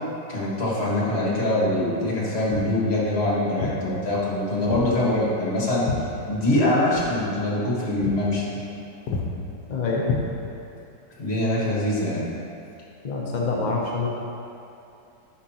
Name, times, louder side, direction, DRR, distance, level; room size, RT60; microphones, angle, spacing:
voice 1, 0.3-5.9 6.3-8.4 11.2-12.3, left 1 dB, 40° left, -6 dB, 1.7 m, -23 dB
Walk footsteps, 2.5-2.8 3.6-3.8 4.7-4.9 5.2-6.6 6.9-7.1 7.5-7.7 8.0-8.2 8.5-8.8 9.1-9.3 10.0-10.7, left 4 dB, 70° left, 1.2 m, -30 dB
voice 2, 9.7-10.1 13.0-14.1, left 3 dB, 55° left, -3 dB, 0.5 m, -26 dB
10.0 x 5.8 x 2.9 m, 2.7 s
omnidirectional pair, 1.9 m